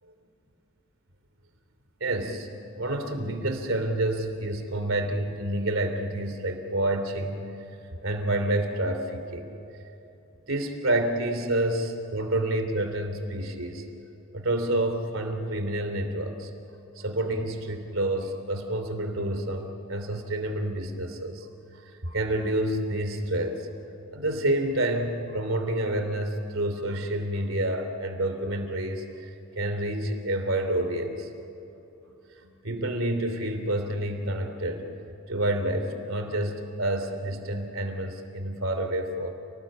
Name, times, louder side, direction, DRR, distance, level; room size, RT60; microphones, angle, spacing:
voice 1, 2.0-2.5 2.8-7.5 8.0-9.5 10.5-13.8 14.3-16.5 16.9-21.5 21.7-23.7 24.1-29.3 29.6-31.3 32.4-34.9 35.3-39.3, right 1 dB, 70° right, 7 dB, 3.2 m, -28 dB
29.5 x 19.0 x 8.9 m, 2.9 s
head